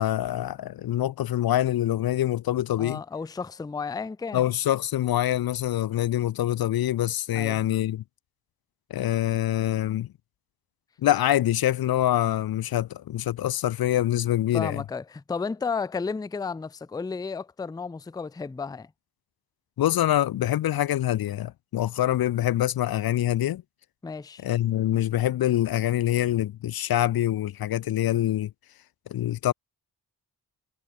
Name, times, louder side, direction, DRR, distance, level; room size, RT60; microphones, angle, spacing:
voice 1, 0.0-3.0 4.3-8.0 8.9-10.1 11.0-14.8 19.8-23.6 24.4-28.5 29.1-29.5, left 12 dB, 60° left, 0.5 m, -25 dB
voice 2, 2.8-4.4 7.3-7.6 14.5-18.9 24.0-24.4, left 5 dB, 10° left, 0.4 m, -33 dB
cardioid pair, 60°, 41 cm